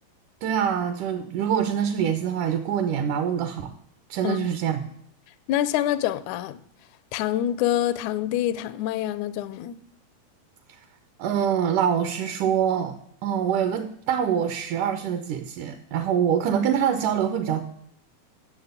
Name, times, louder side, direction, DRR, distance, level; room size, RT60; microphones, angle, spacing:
voice 1, 0.4-3.7 4.1-4.9 11.2-17.6, right 8 dB, 75° right, 9 dB, 2.0 m, -25 dB
voice 2, 5.5-6.6 7.1-9.8, left 12 dB, 85° left, 15 dB, 1.7 m, -26 dB
11.0 x 7.1 x 8.1 m, 0.68 s
omnidirectional pair, 4.2 m